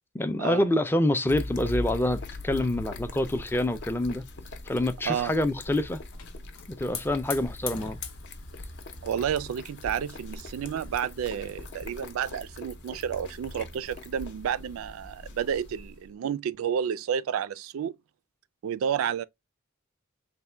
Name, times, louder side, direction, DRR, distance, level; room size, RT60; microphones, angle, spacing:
voice 1, 0.1-4.2 4.7-6.0 6.7-8.0, left 1 dB, 10° left, 0.3 m, -26 dB
sound 1, 1.3-16.1, left 2 dB, 55° left, 0.6 m, -41 dB
Hiss / Fire, 5.3-12.1, left 7 dB, 90° left, 0.8 m, -44 dB
voice 2, 9.0-17.9 18.6-19.2, right 8 dB, 75° right, 0.3 m, -30 dB
3.3 x 2.1 x 4.2 m
head